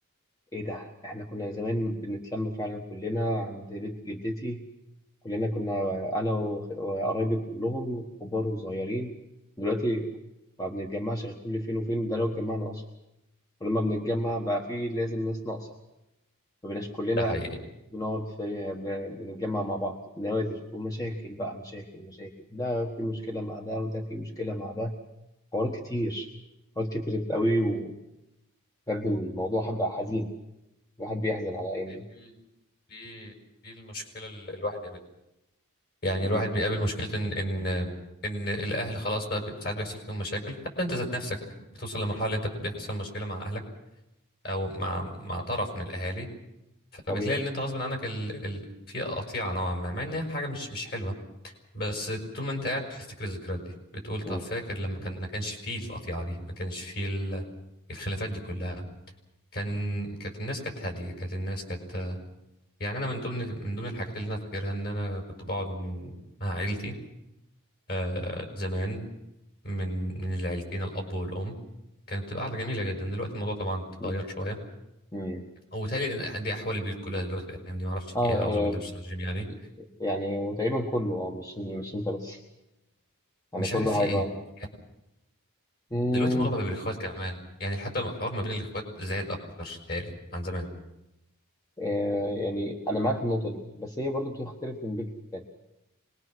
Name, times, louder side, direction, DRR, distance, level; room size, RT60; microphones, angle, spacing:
voice 1, 0.5-4.6 5.2-9.1 9.6-10.1 10.6-12.8 13.6-15.7 16.6-17.4 17.9-24.9 25.5-26.3 26.8-27.9 28.9-30.3 31.0-32.0 36.2-36.5 47.1-47.4 54.3-54.5 74.0-74.2 75.1-75.4 78.1-78.8 79.8-82.4 83.5-84.3 85.9-86.5 91.8-95.4, left 1 dB, 15° left, 1 dB, 1.5 m, -30 dB
voice 2, 17.2-17.5 31.9-32.3 32.9-33.3 33.6-35.0 36.0-37.9 38.2-41.4 41.8-43.6 44.4-46.3 46.9-51.1 51.4-53.6 53.9-57.4 57.9-58.9 59.5-62.2 62.8-66.1 66.4-66.9 67.9-69.1 69.6-71.5 72.1-74.6 75.7-79.5 83.6-84.2 86.1-90.7, equal, 45° left, 3 dB, 5.7 m, -32 dB
26.0 x 21.0 x 6.3 m, 0.92 s
head